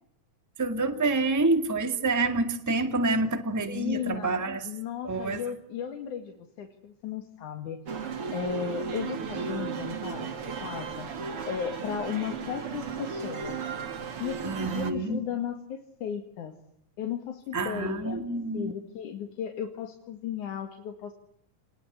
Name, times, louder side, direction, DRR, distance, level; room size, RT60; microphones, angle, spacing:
voice 1, 0.6-4.7 5.0-5.4 14.4-15.2 17.5-18.7, right 3 dB, 5° right, 7 dB, 1.6 m, -27 dB
voice 2, 3.7-7.8 8.3-11.1 11.5-13.6 14.2-16.5 17.0-18.2 18.5-21.1, left 8 dB, 70° left, 5 dB, 3.3 m, -35 dB
sound 1, 7.9-14.9, right 6 dB, 45° right, 3.0 m, -35 dB
29.0 x 21.0 x 9.7 m, 0.71 s
omnidirectional pair, 3.8 m